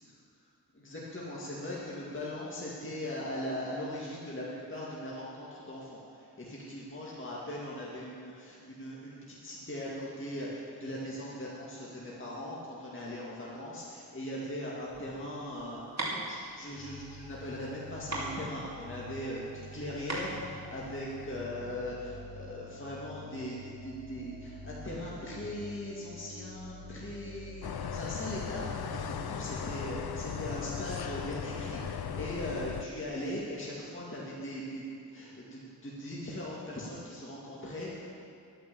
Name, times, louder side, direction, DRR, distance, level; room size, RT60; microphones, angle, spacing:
voice 1, 0.7-38.3, left 1 dB, 30° left, -6 dB, 2.2 m, -40 dB
sound 1, 14.8-21.4, right 2 dB, 45° right, 2.5 m, -39 dB
sound 2, 16.7-33.1, left 1 dB, 60° right, 3.1 m, -48 dB
sound 3, 27.6-32.9, left 7 dB, 70° left, 0.6 m, -37 dB
11.5 x 9.4 x 7.0 m, 2.4 s
wide cardioid pair, 70°, 39 cm